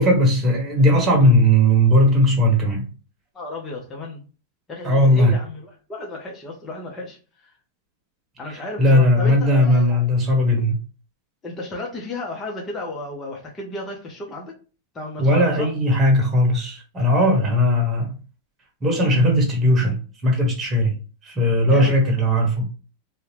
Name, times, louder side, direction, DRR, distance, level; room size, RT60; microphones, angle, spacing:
voice 1, 0.0-2.9 4.8-5.3 8.8-10.7 15.2-18.2 18.8-20.0 20.2-21.0 21.2-22.7, equal, 20° right, 1.2 m, -18 dB
voice 2, 3.3-4.2 4.7-7.2 8.4-10.0 11.4-14.5 14.9-15.7 21.7-22.1, left 2 dB, 20° left, 0.9 m, -33 dB
2.7 x 2.3 x 3.3 m
supercardioid pair, 140°, 0 cm